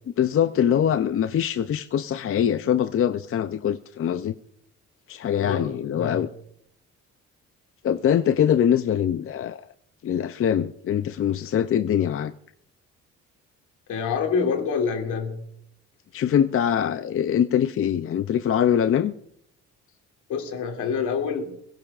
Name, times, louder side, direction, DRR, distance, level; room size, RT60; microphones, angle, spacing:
voice 1, 0.2-4.4 5.1-6.3 7.8-9.7 10.0-12.3 16.1-19.1, left 9 dB, 45° left, 0.5 m, -23 dB
voice 2, 5.4-6.3 13.9-15.4 20.3-21.6, left 6 dB, 80° left, 2.6 m, -27 dB
21.5 x 15.5 x 2.5 m
cardioid pair, 90°, 30 cm